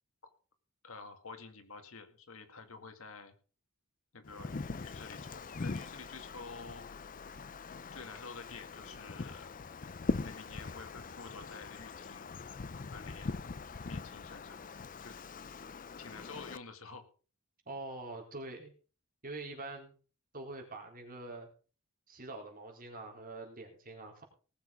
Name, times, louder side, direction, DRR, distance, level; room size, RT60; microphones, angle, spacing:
voice 1, 0.8-3.3 4.1-6.9 7.9-9.5 9.9-12.4 12.9-13.3 13.8-14.6 15.0-15.2 16.0-17.0, left 4 dB, 70° left, 8 dB, 2.1 m, -49 dB
Wind, 4.2-16.6, left 4 dB, 40° left, 0.6 m, -42 dB
voice 2, 17.7-18.7 19.2-19.9 20.3-21.5 22.1-24.2, right 2 dB, 45° right, 1 dB, 4.2 m, -44 dB
19.0 x 7.1 x 5.2 m, 0.37 s
head